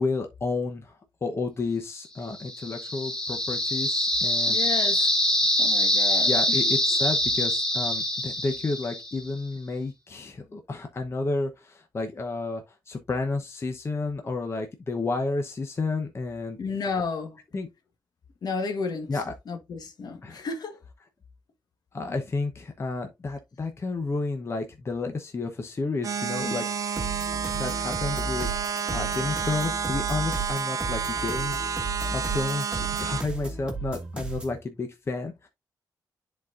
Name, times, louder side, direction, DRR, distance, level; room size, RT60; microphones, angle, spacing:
voice 1, 0.0-4.6 6.3-16.6 17.5-17.7 19.1-19.3 20.2-20.4 21.9-26.6 27.5-35.5, left 3 dB, 35° left, 0.9 m, -31 dB
sound 1, 2.3-9.3, left 1 dB, 10° left, 1.5 m, -24 dB
voice 2, 4.5-5.0 5.6-6.6 16.6-17.4 18.4-19.2 19.5-20.8, left 4 dB, 65° left, 1.3 m, -32 dB
sound 2, 26.0-33.2, right 6 dB, 50° right, 0.5 m, -30 dB
sound 3, 27.0-34.6, right 3 dB, 15° right, 1.6 m, -34 dB
10.5 x 4.1 x 2.5 m
wide cardioid pair, 110°, 7 cm